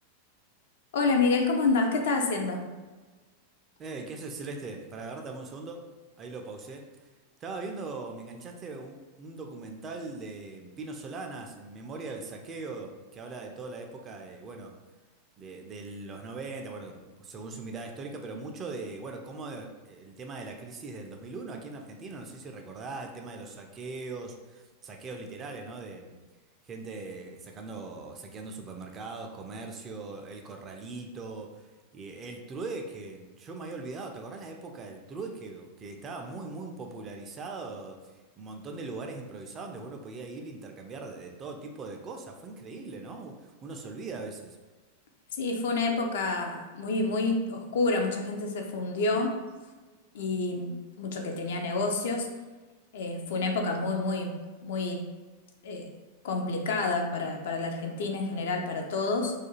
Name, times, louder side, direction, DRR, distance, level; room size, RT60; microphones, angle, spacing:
voice 1, 0.9-2.6 45.4-49.3 50.1-52.3 52.9-54.3 54.6-55.0 55.6-55.9 56.2-59.3, left 3 dB, 55° left, 3 dB, 0.4 m, -28 dB
voice 2, 3.8-5.8 6.2-7.1 7.4-14.7 15.4-26.1 26.6-31.7 31.9-44.6, right 3 dB, 25° right, 2 dB, 0.3 m, -40 dB
2.4 x 2.2 x 2.9 m, 1.3 s
figure-of-eight pair, 90°, 0 cm